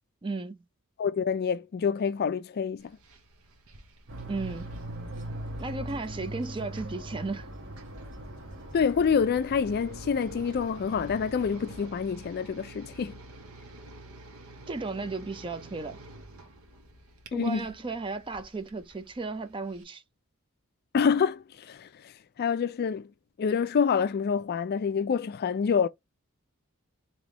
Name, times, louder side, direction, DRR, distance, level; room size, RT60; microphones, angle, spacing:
voice 1, 0.2-0.6 4.3-4.8 5.6-7.5 14.7-16.0 17.3-20.0, right 3 dB, 25° right, 0.5 m, -35 dB
voice 2, 1.0-2.9 8.7-13.2 17.3-17.6 20.9-22.1 22.4-23.1 23.4-25.9, left 6 dB, 45° left, 0.3 m, -27 dB
sound 1, 2.8-19.8, right 1 dB, 80° right, 1.0 m, -50 dB
sound 2, 4.1-11.9, right 1 dB, 60° right, 1.2 m, -41 dB
3.3 x 3.0 x 3.8 m
head